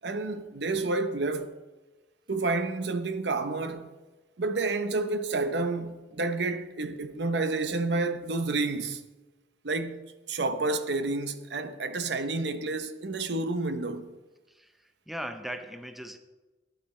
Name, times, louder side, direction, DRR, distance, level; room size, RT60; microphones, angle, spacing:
voice 1, 0.0-1.5 2.3-3.9 4.4-9.0 9.6-10.0 10.3-14.2, right 3 dB, 70° right, 0.8 m, -30 dB
voice 2, 14.5-16.2, equal, ahead, 0.5 m, -39 dB
13.0 x 9.4 x 4.2 m
head